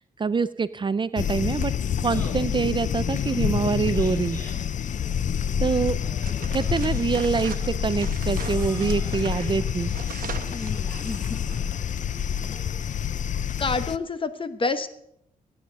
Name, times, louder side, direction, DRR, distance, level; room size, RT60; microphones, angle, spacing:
voice 1, 0.0-1.7 2.0-4.4 5.6-6.0 6.5-9.9, right 5 dB, 30° right, 15 dB, 0.4 m, -25 dB
sound 1, 1.2-14.0, left 8 dB, 60° left, 0.5 m, -27 dB
Laughter, 1.9-12.9, equal, 10° left, 4.5 m, -47 dB
sound 2, 6.2-11.7, right 8 dB, 75° right, 1.0 m, -40 dB
voice 2, 10.5-11.4 13.6-14.9, left 3 dB, 35° left, 10 dB, 1.2 m, -29 dB
16.0 x 9.3 x 6.7 m, 0.76 s
cardioid pair, 95°, 15 cm